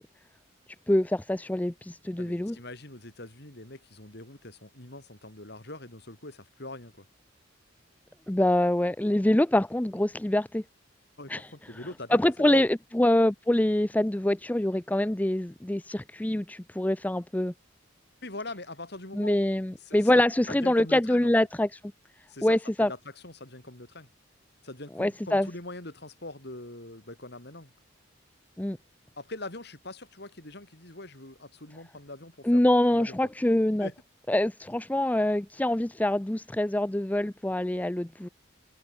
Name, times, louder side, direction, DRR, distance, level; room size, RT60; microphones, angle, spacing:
voice 1, 0.9-2.6 8.3-10.6 11.3-11.5 12.1-17.5 19.1-21.8 22.4-22.9 25.0-25.5 28.6-28.8 32.4-33.9 34.3-38.3, left 1 dB, 10° left, 0.4 m, -25 dB
voice 2, 2.2-7.0 11.2-12.7 18.2-19.4 19.8-21.3 22.3-23.0 23.2-24.1 24.6-27.7 29.2-32.6 32.9-33.2 33.8-33.9, left 2 dB, 55° left, 4.3 m, -42 dB
head